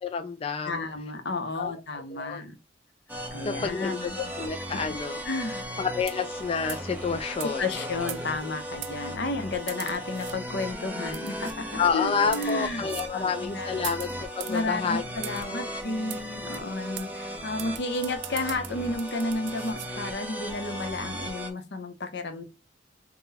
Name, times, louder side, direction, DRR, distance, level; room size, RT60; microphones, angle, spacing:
voice 1, 0.0-0.8 1.6-2.4 3.4-4.1 4.4-5.2 5.8-7.8 11.8-14.1 14.4-15.0 15.4-15.7, left 5 dB, 30° left, 0.3 m, -29 dB
voice 2, 0.6-2.6 3.3-4.3 4.7-4.8 5.2-5.7 7.6-13.9 14.5-22.4, left 2 dB, 65° left, 0.8 m, -32 dB
sound 1, 3.1-21.5, equal, 10° right, 0.8 m, -37 dB
sound 2, 6.1-6.4 6.7-6.9 7.4-7.5 8.1-8.4 8.8-8.9 9.7-10.4 11.1-11.6 12.2-12.5 12.9-13.1 13.8-14.6 15.2-15.5 16.1-16.2 16.5-16.6 17.0-17.1 17.6-19.9, right 15 dB, 70° right, 0.3 m, -40 dB
3.9 x 2.2 x 4.0 m
head